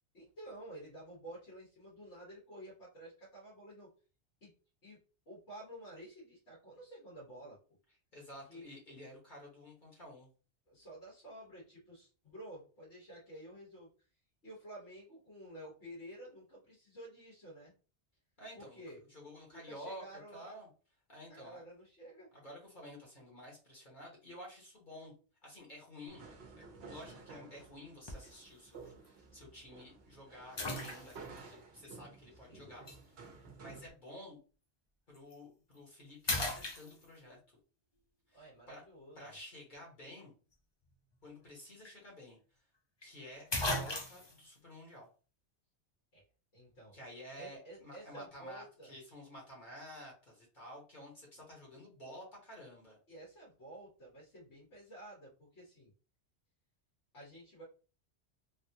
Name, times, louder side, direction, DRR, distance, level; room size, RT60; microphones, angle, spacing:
voice 1, 0.1-3.9 4.4-4.5 4.8-5.0 5.3-7.6 8.5-8.7 10.7-13.9 14.4-17.7 18.5-19.0 19.5-20.6 21.3-22.3 32.5-32.7 38.3-39.2 46.1-46.2 46.5-46.9 47.4-48.9 53.1-55.9 57.1-57.6, right 1 dB, 85° left, -6 dB, 1.7 m, -51 dB
voice 2, 8.1-10.3 18.4-18.8 19.1-20.0 20.3-20.7 21.1-21.6 22.3-25.1 25.4-26.3 26.6-33.1 33.4-34.4 35.1-37.4 38.3-38.8 39.1-40.3 41.2-42.4 43.0-45.1 46.9-53.0, left 1 dB, 45° left, -3 dB, 1.2 m, -51 dB
sound 1, 26.1-33.9, right 4 dB, 65° right, 1.0 m, -53 dB
sound 2, 28.1-28.4 29.0-29.1 30.6-31.4 32.9-33.0 35.1-35.3 35.8-35.9 36.3-37.3 41.5-41.6 41.8-41.9 43.0-43.1 43.5-44.4, left 1 dB, 30° left, 0.6 m, -36 dB
3.4 x 2.4 x 2.8 m, 0.37 s
omnidirectional pair, 1.1 m